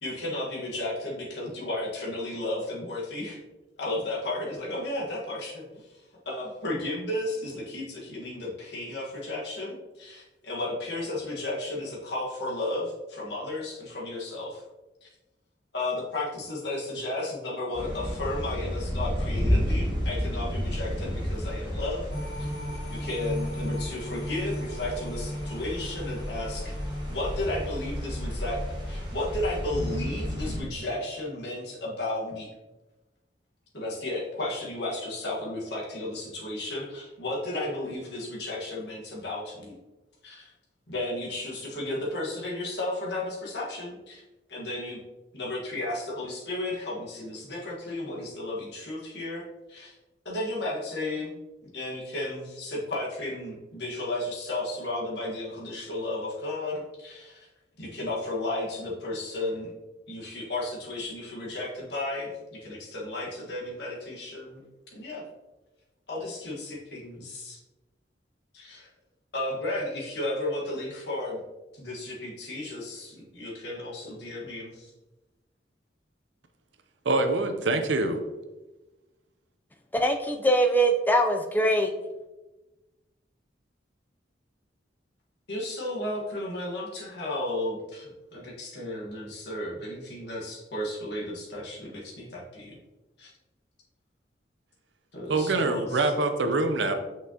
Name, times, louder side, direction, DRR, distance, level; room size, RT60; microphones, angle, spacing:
voice 1, 0.0-3.4 3.8-14.6 15.0-15.1 15.7-22.1 22.4-22.5 22.9-26.8 27.1-28.6 28.9-32.5 33.7-39.8 40.2-40.5 40.9-44.2 44.5-45.0 45.3-49.4 49.7-49.9 50.2-51.3 51.6-57.5 57.8-59.7 60.1-65.2 66.1-67.6 68.5-68.9 69.3-71.4 71.7-74.9 85.5-92.8 93.2-93.3 95.1-96.1, left 1 dB, 65° left, -3 dB, 1.5 m, -33 dB
sound 1, 17.7-30.6, equal, 25° right, 1.4 m, -32 dB
sound 2, 22.1-30.5 30.9-31.0, equal, 85° left, 1.4 m, -37 dB
voice 2, 77.1-78.2 95.3-96.9, right 2 dB, 80° right, 7 dB, 0.7 m, -25 dB
voice 3, 79.9-81.9, right 1 dB, 10° left, 4 dB, 0.4 m, -22 dB
6.0 x 5.6 x 2.9 m, 1.1 s
head